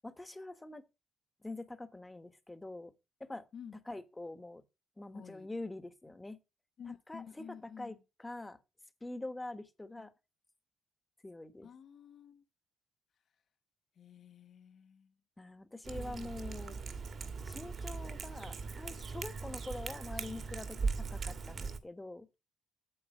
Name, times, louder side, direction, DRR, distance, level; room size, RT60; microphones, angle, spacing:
voice 1, 0.0-0.8 1.4-2.9 3.2-3.4 3.9-4.6 5.0-6.4 7.1-7.2 7.8-8.6 9.0-10.1 11.2-11.7 15.4-16.8 17.4-22.3, left 2 dB, 15° left, 1.3 m, -45 dB
voice 2, 5.1-5.5 6.8-8.0 10.0-10.1 11.6-12.4 13.9-15.1, left 7 dB, 60° left, 1.2 m, -51 dB
Cat, 15.8-21.8, right 4 dB, 50° right, 1.8 m, -39 dB
9.0 x 7.7 x 4.9 m
cardioid pair, 90°, 0 cm